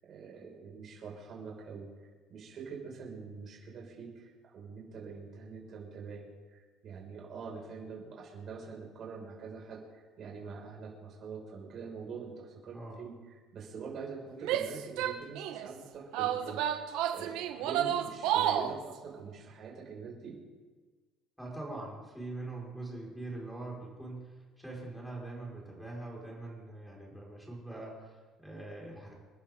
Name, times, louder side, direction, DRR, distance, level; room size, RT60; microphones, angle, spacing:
voice 1, 0.0-20.4, right 5 dB, 40° right, -3 dB, 6.1 m, -45 dB
Female speech woman speaking / Yell, 14.4-15.7 16.1-18.8, right 10 dB, 75° right, 1.2 m, -31 dB
voice 2, 21.4-29.1, right 2 dB, ahead, -4 dB, 5.4 m, -43 dB
29.5 x 11.5 x 3.9 m, 1.4 s
cardioid pair, 155°, 0 cm